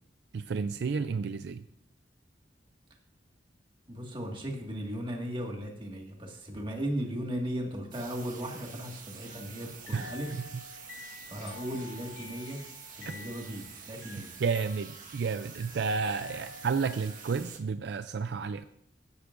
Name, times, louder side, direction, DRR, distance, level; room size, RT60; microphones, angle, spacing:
voice 1, 0.3-1.7 9.9-10.1 13.1-13.2 14.4-18.6, right 5 dB, 65° right, 11 dB, 0.4 m, -31 dB
voice 2, 3.9-10.3 11.3-12.6 13.0-14.3, equal, 30° right, 0 dB, 1.8 m, -36 dB
sound 1, 7.9-17.6, right 6 dB, 45° right, 1.5 m, -48 dB
sound 2, 9.2-17.5, left 3 dB, 80° left, 3.5 m, -49 dB
15.5 x 9.4 x 2.5 m, 0.72 s
head